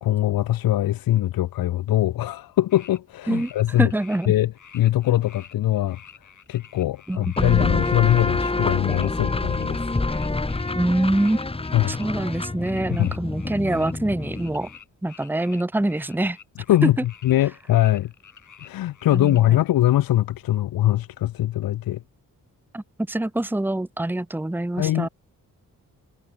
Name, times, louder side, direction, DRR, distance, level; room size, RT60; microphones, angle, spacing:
voice 1, 0.0-3.9 4.3-6.0 6.5-9.9 11.7-12.0 13.0-13.1 16.7-18.1 18.6-22.0 24.8-25.1, left 14 dB, 85° left, 0.8 m, -22 dB
sound 1, 2.7-3.0 3.2-4.3 4.5-19.4, left 7 dB, 60° left, 6.3 m, -48 dB
voice 2, 3.8-4.3 7.1-7.9 10.7-11.5 11.9-14.7 15.0-16.4 19.1-19.4 22.7-25.1, right 1 dB, 5° right, 1.2 m, -25 dB
sound 2, 7.4-14.7, left 2 dB, 15° left, 1.6 m, -27 dB
cardioid pair, 105°, 34 cm